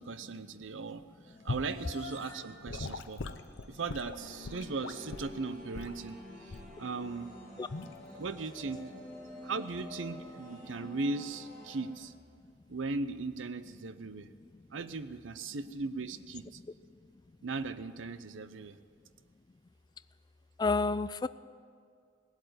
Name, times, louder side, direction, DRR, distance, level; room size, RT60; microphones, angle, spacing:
voice 1, 0.0-3.2 3.7-7.3 8.2-8.8 9.4-12.1 12.7-14.3 14.7-16.6 17.4-18.8, right 3 dB, 80° right, 13 dB, 0.7 m, -38 dB
sound 1, 1.2-11.4, left 3 dB, 60° left, 2.6 m, -53 dB
Gurgling / Sink (filling or washing) / Liquid, 1.5-1.7 2.7-5.4 5.7-6.0 6.5-6.8 7.7-7.9, left 3 dB, 75° left, 0.7 m, -40 dB
sound 2, 4.2-11.8, equal, 45° right, 5.7 m, -49 dB
voice 2, 7.6-8.2 9.3-9.4 20.6-21.3, left 3 dB, 20° left, 15 dB, 0.3 m, -31 dB
18.0 x 8.2 x 9.4 m, 2.1 s
head